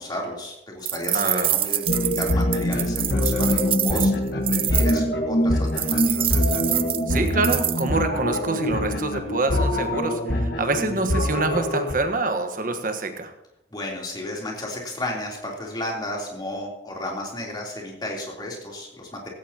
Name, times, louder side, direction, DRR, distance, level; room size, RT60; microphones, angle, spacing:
voice 1, 0.0-1.9 2.1-4.1 4.5-6.4 13.7-19.3, left 1 dB, 25° left, -2 dB, 3.4 m, -33 dB
sound 1, 0.9-5.0 5.8-7.9, right 12 dB, 30° right, 0.4 m, -26 dB
voice 2, 1.1-1.5 7.1-13.3, right 3 dB, 50° right, 7 dB, 1.4 m, -26 dB
sound 2, 1.9-11.9, left 1 dB, 70° left, 1.6 m, -24 dB
16.5 x 16.0 x 2.9 m, 0.87 s
head